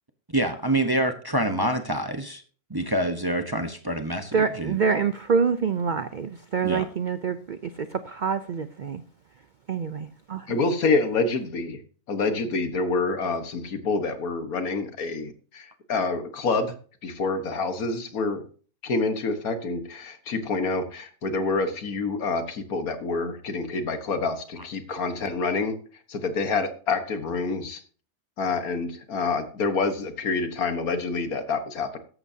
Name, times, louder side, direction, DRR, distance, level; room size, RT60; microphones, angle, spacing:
voice 1, 0.3-2.4 2.7-4.8 6.6-6.9, right 1 dB, 20° right, 6 dB, 0.8 m, -26 dB
voice 2, 4.3-9.0 9.7-10.5, right 6 dB, 80° right, 11 dB, 0.4 m, -26 dB
voice 3, 10.5-11.8 12.1-16.7 17.0-18.4 18.8-25.7 26.1-27.8 28.4-32.0, left 3 dB, 70° left, 8 dB, 1.8 m, -27 dB
14.0 x 11.0 x 2.8 m, 0.42 s
omnidirectional pair, 1.6 m